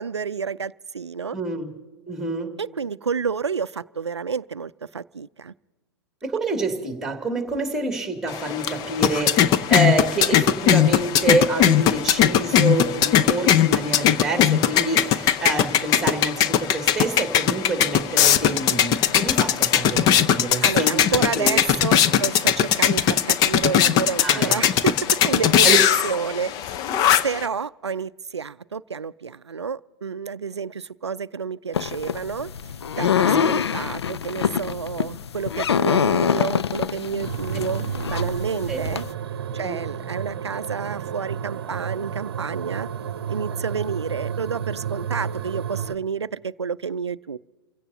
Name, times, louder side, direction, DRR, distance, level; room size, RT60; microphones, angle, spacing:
voice 1, 0.0-1.4 2.6-5.5 20.6-25.0 25.2-25.8 26.0-26.5 27.2-32.5 32.9-39.0 39.5-42.9 43.3-47.4, right 6 dB, 90° right, 15 dB, 0.4 m, -29 dB
voice 2, 1.3-1.7 2.1-2.5 6.2-21.8 24.2-24.6 25.6-25.8 33.2-33.5 38.7-38.8 39.6-39.7, right 3 dB, 5° right, 4 dB, 2.6 m, -27 dB
sound 1, 8.3-27.5, left 10 dB, 30° left, 0.6 m, -20 dB
sound 2, 31.7-39.1, left 7 dB, 75° left, 0.5 m, -25 dB
sound 3, 37.2-46.0, right 7 dB, 60° right, 0.8 m, -31 dB
29.5 x 16.5 x 2.8 m, 1.3 s
figure-of-eight pair, 115°, 14 cm